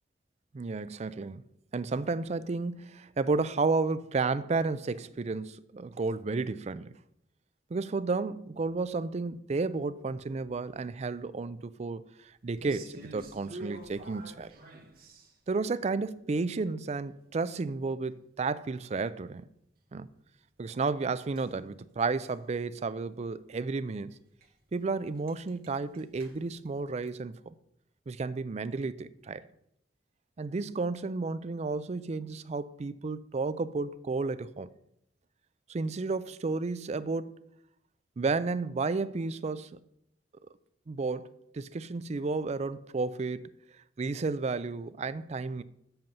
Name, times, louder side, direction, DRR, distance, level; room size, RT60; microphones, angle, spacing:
voice 1, 0.5-1.4 1.7-6.9 7.7-12.0 12.4-14.5 15.5-19.5 19.9-20.1 20.6-24.2 24.7-27.4 28.1-29.4 30.4-34.7 35.7-37.3 38.2-39.7 40.9-43.5 44.0-45.6, right 3 dB, 40° right, 0.4 m, -32 dB
sound 1, 12.5-15.5 21.4-22.6 22.9-23.2 23.4-23.6 24.1-24.2 24.4-24.5 24.8-24.9 25.1-27.1, right 2 dB, 55° right, 1.4 m, -48 dB
7.9 x 5.4 x 7.2 m
head